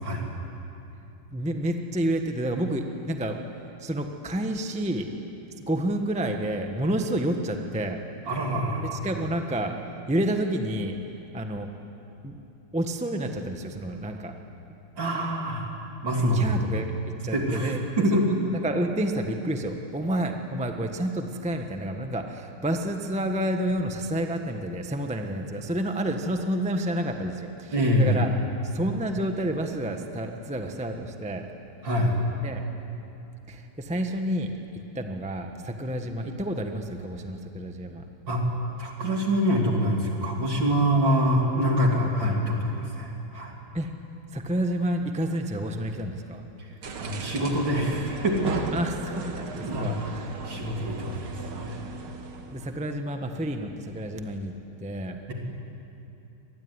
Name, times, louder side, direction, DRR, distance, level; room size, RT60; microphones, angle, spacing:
voice 1, 1.3-3.4 3.8-5.1 5.7-8.0 8.9-9.7 10.1-11.0 11.3-11.7 12.2-12.4 12.7-14.4 16.2-18.2 18.6-31.5 32.4-32.6 33.5-38.0 43.7-43.9 44.3-46.5 48.7-50.3 52.5-54.5 54.8-55.2, right 1 dB, 5° right, 4 dB, 1.1 m, -29 dB
voice 2, 8.3-9.0 15.0-15.6 16.0-16.5 17.3-18.4 27.7-28.2 31.8-32.2 38.3-38.4 38.8-43.5 46.6-46.7 47.0-48.6 49.6-49.9 50.4-51.3 51.6-51.8, equal, 60° right, 0 dB, 3.9 m, -25 dB
sound 1, 46.8-52.8, right 4 dB, 80° right, 2.5 m, -37 dB
25.5 x 20.0 x 9.8 m, 2.8 s
omnidirectional pair, 2.3 m